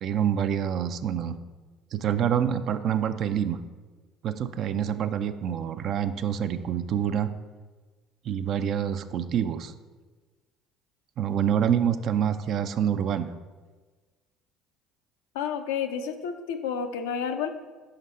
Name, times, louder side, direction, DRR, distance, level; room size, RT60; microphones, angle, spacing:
voice 1, 0.0-1.4 1.9-3.6 4.2-7.3 8.2-9.7 11.2-13.3, right 9 dB, 60° right, 11 dB, 0.4 m, -26 dB
voice 2, 15.3-17.5, left 7 dB, 85° left, 7 dB, 0.4 m, -30 dB
5.2 x 3.9 x 5.4 m, 1.3 s
hypercardioid pair, 65°, 0 cm